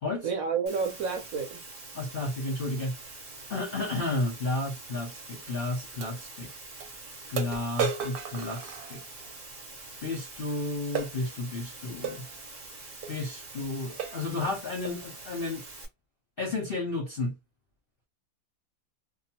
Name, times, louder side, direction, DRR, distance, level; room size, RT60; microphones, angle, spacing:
voice 1, 0.2-1.6, right 5 dB, 65° right, 1.0 m, -30 dB
Water, 0.7-15.9, right 3 dB, 40° right, 0.9 m, -45 dB
voice 2, 1.9-3.0 3.5-6.5 7.3-9.0 10.0-12.2 13.1-15.6 16.4-17.3, left 2 dB, 50° left, 0.7 m, -32 dB
sound 1, 5.0-5.1 6.0-6.1 6.8-6.9 7.4-9.3 11.0-11.2 12.0-12.2 13.0-13.2 13.6-13.7 14.0-14.3 14.9-15.1, right 6 dB, 90° right, 1.2 m, -34 dB
2.8 x 2.1 x 2.8 m
omnidirectional pair, 1.8 m